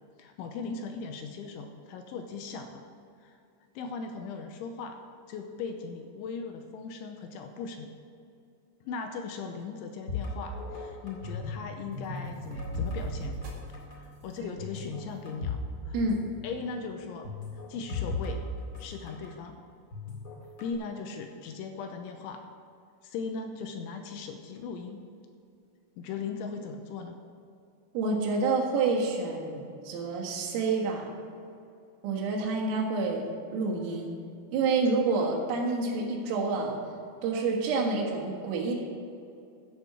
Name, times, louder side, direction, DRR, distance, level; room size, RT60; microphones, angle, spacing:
voice 1, 0.2-2.8 3.2-3.3 3.8-5.0 5.3-7.9 8.8-13.4 13.9-16.0 16.4-18.4 18.8-19.6 20.6-22.5 23.0-25.0 26.0-27.2, left 5 dB, 80° left, 5 dB, 2.9 m, -38 dB
sound 1, 10.1-11.6 11.9-13.5 13.7-14.0 14.6-15.7 16.0-16.1 17.2-19.3 19.9-20.7, left 4 dB, 40° left, 1.5 m, -36 dB
sound 2, 11.8-18.6, right 3 dB, 55° right, 2.6 m, -44 dB
voice 2, 27.9-31.1 32.0-34.1 34.5-36.8 37.2-38.7, right 3 dB, 85° right, -2 dB, 4.4 m, -28 dB
15.0 x 7.2 x 6.1 m, 2.5 s
omnidirectional pair, 5.8 m